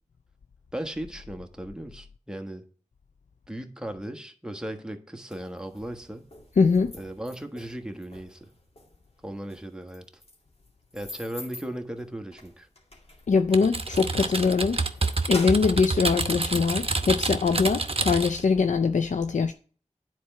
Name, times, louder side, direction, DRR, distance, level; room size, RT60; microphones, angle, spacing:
voice 1, 0.7-2.6 3.5-6.3 6.9-8.5 9.2-10.1 10.9-12.7, right 1 dB, 5° right, 1.3 m, -37 dB
sound 1, 5.3-16.9, left 1 dB, 55° left, 2.3 m, -46 dB
voice 2, 6.6-6.9 13.3-14.8 15.3-19.5, left 5 dB, 80° left, 0.4 m, -22 dB
Typing, 13.5-18.4, right 3 dB, 50° right, 0.8 m, -28 dB
9.6 x 4.5 x 6.6 m
wide cardioid pair, 50°, 13 cm